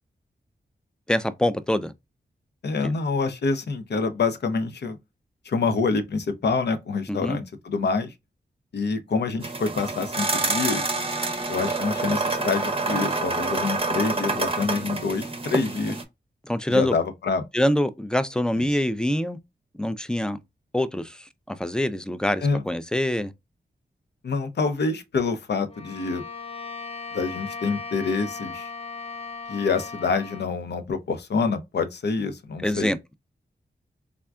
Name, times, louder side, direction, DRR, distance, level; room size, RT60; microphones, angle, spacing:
voice 1, 1.1-1.9 2.8-2.9 7.1-7.4 16.4-17.0 17.5-19.4 19.8-20.4 20.7-23.3 32.6-33.0, left 1 dB, 5° left, 0.4 m, -25 dB
voice 2, 2.6-5.0 5.5-8.1 8.7-10.8 11.5-16.0 16.7-17.5 22.4-22.6 24.2-26.2 27.1-28.7 29.5-32.9, left 4 dB, 65° left, 0.6 m, -26 dB
sound 1, 9.4-16.0, right 3 dB, 30° right, 0.6 m, -27 dB
Bowed string instrument, 25.7-30.6, left 4 dB, 30° left, 0.8 m, -37 dB
3.5 x 2.1 x 2.4 m
cardioid pair, 45°, 18 cm